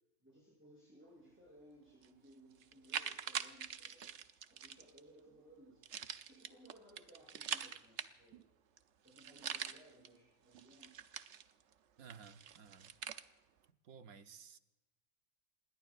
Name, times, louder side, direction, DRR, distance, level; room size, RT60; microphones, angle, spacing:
voice 1, 0.2-4.1 4.4-8.4 9.0-11.0, right 1 dB, 10° right, -6 dB, 7.4 m, -62 dB
sound 1, 2.0-2.1 2.6-5.0 5.8-8.4 8.8-8.9 9.1-10.1 10.5-11.7 12.1-13.2, right 8 dB, 60° right, 0.9 m, -44 dB
voice 2, 12.0-12.9 13.8-14.6, right 6 dB, 80° right, 9 dB, 1.3 m, -56 dB
27.0 x 21.0 x 2.5 m, 1.0 s
omnidirectional pair, 1.5 m